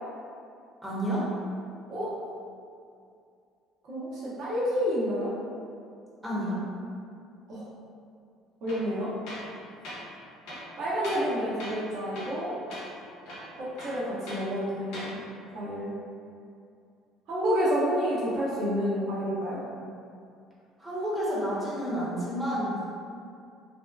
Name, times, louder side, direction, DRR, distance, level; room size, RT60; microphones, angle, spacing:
voice 1, 0.8-1.3 6.2-6.6 20.8-22.8, equal, 15° right, -7 dB, 0.8 m, -30 dB
voice 2, 3.9-5.3 7.5-7.7 8.6-9.1 10.8-12.5 13.6-15.1 15.5-15.9 17.3-19.6, equal, 60° right, -8 dB, 0.9 m, -29 dB
Tools, 8.7-8.9 9.3-9.5 9.8-10.0 10.4-11.3 11.6-11.9 12.1-12.4 12.7-12.9 13.2-14.5 14.8-15.1, left 1 dB, 70° left, 0.6 m, -40 dB
2.7 x 2.1 x 2.3 m, 2.4 s
hypercardioid pair, 65°, 0 cm